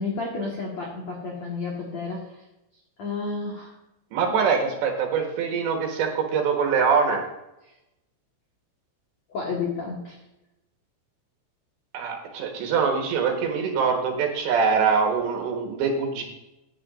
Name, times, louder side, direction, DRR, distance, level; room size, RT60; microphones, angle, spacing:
voice 1, 0.0-2.4 3.0-3.7 4.2-4.3 9.3-10.2, left 4 dB, 80° left, -2 dB, 1.5 m, -31 dB
voice 2, 4.1-7.2 11.9-16.2, right 5 dB, 70° right, 2 dB, 3.2 m, -23 dB
15.0 x 9.4 x 2.6 m, 0.92 s
omnidirectional pair, 5.9 m